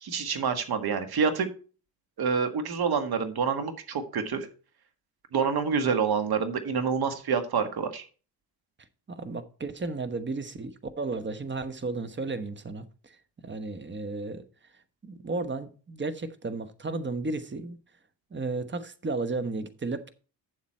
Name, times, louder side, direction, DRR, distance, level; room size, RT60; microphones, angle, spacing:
voice 1, 0.0-1.5 2.2-4.5 5.3-8.0, right 6 dB, 50° right, 1.7 m, -27 dB
voice 2, 9.1-13.2 13.4-14.4 15.0-17.8 18.3-20.1, right 3 dB, 25° right, 1.2 m, -33 dB
8.5 x 7.3 x 4.4 m
hypercardioid pair, 55°, 47 cm